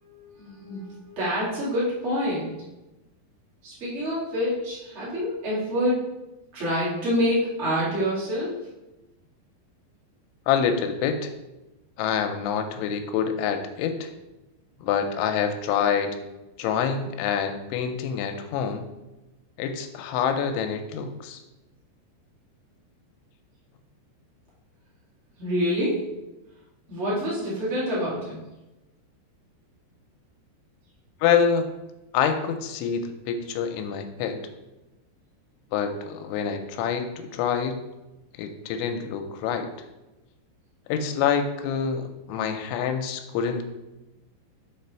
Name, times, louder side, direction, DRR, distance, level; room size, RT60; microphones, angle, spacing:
voice 1, 0.0-2.5 3.6-6.0 6.5-8.7 25.4-26.1 26.9-28.4, equal, 45° right, -8 dB, 0.8 m, -27 dB
voice 2, 10.5-11.3 12.0-14.1 14.8-16.2 16.6-18.9 19.6-21.4 31.2-31.7 32.1-34.4 35.7-37.8 38.3-39.7 40.9-43.7, left 7 dB, 85° left, 7 dB, 3.0 m, -26 dB
7.0 x 3.3 x 4.4 m, 1.0 s
omnidirectional pair, 5.3 m